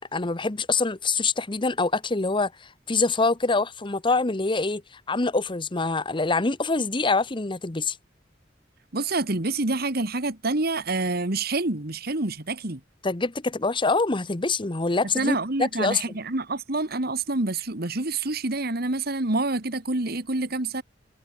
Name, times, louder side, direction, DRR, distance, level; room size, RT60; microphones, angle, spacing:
voice 1, 0.1-2.5 2.9-4.8 5.1-8.0 13.0-16.0, left 3 dB, 25° left, 1.0 m, -25 dB
voice 2, 8.9-12.8 15.2-20.8, right 2 dB, 55° right, 2.0 m, -27 dB
head